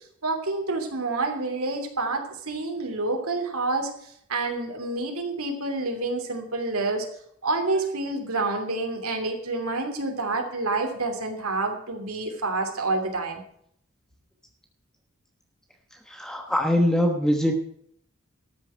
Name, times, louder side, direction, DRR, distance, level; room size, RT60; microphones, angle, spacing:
voice 1, 0.2-7.1 7.4-13.4, right 3 dB, 90° right, 4 dB, 2.9 m, -28 dB
voice 2, 16.1-17.6, equal, 5° left, 2 dB, 1.1 m, -23 dB
13.0 x 6.9 x 9.2 m, 0.67 s
head